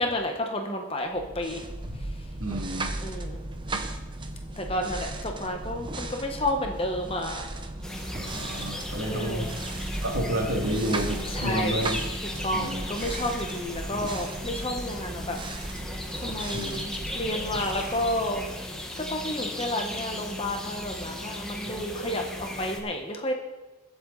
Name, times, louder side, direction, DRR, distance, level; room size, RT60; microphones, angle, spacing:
voice 1, 0.0-1.6 3.0-3.4 4.6-7.4 9.1-9.5 11.3-11.8 12.4-15.4 16.2-18.4 19.1-23.3, left 1 dB, 25° left, 3 dB, 1.3 m, -31 dB
sound 1, 1.1-19.0, right 2 dB, 20° right, 0.8 m, -36 dB
voice 2, 2.3-2.9 3.7-3.8 8.2-9.5 10.0-12.0 12.5-12.8 16.5-16.8, equal, 70° right, 1 dB, 2.2 m, -30 dB
sound 2, 7.8-22.8, left 1 dB, 5° left, 1.3 m, -36 dB
22.5 x 7.9 x 4.1 m, 1.1 s
head